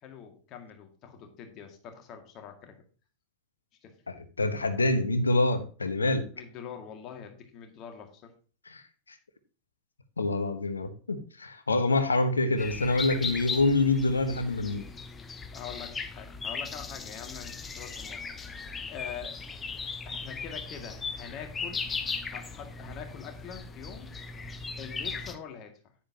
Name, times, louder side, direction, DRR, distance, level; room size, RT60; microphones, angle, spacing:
voice 1, 0.0-2.8 3.8-4.0 6.3-8.3 15.5-19.4 20.1-21.8 22.3-24.1 24.8-25.7, left 7 dB, 35° left, 4 dB, 2.0 m, -44 dB
voice 2, 4.1-6.3 8.7-8.8 10.2-14.8, left 2 dB, 75° left, 10 dB, 1.1 m, -26 dB
sound 1, 12.6-25.4, left 5 dB, 20° left, 0.9 m, -38 dB
9.9 x 9.7 x 2.9 m, 0.37 s
figure-of-eight pair, 90°, 0 cm